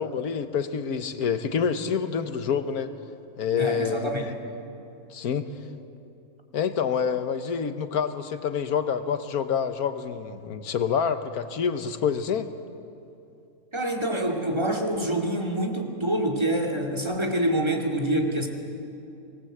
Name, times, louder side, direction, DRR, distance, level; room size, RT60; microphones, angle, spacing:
voice 1, 0.0-2.9 3.4-4.1 5.1-5.5 6.5-12.5, left 7 dB, 80° left, 10 dB, 1.6 m, -27 dB
voice 2, 3.6-4.3 13.7-18.5, right 1 dB, 20° right, 1 dB, 2.4 m, -26 dB
25.5 x 20.0 x 8.0 m, 2.7 s
omnidirectional pair, 1.6 m